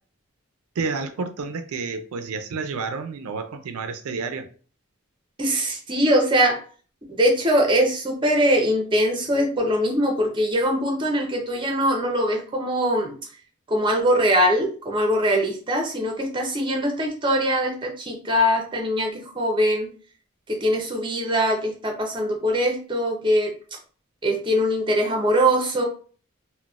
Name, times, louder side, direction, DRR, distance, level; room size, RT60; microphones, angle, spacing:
voice 1, 0.8-4.5, right 4 dB, 85° right, 7 dB, 0.4 m, -30 dB
voice 2, 5.4-6.6 7.1-13.1 13.7-19.9 20.5-23.5 24.2-25.8, equal, 20° right, 1 dB, 0.6 m, -22 dB
3.8 x 2.1 x 2.3 m, 0.41 s
head